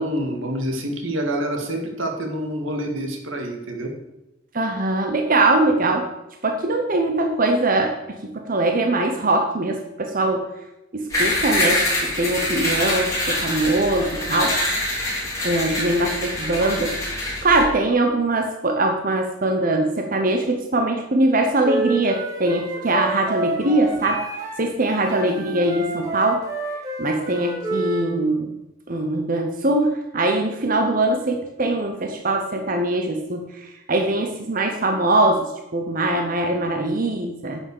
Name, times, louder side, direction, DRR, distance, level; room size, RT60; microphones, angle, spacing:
voice 1, 0.0-3.9, right 1 dB, 75° right, 3 dB, 2.0 m, -27 dB
voice 2, 4.5-6.0 6.4-10.5 10.9-14.6 15.4-17.0 17.4-24.2 24.6-26.4 27.0-28.5 28.9-37.6, right 2 dB, 45° right, 3 dB, 0.9 m, -22 dB
sound 1, 11.1-17.6, left 1 dB, 15° left, 3.9 m, -25 dB
Wind instrument woodwind instrument, 21.6-24.6 24.9-28.1, right 3 dB, 20° right, 2.5 m, -29 dB
10.0 x 6.4 x 6.6 m, 0.96 s
head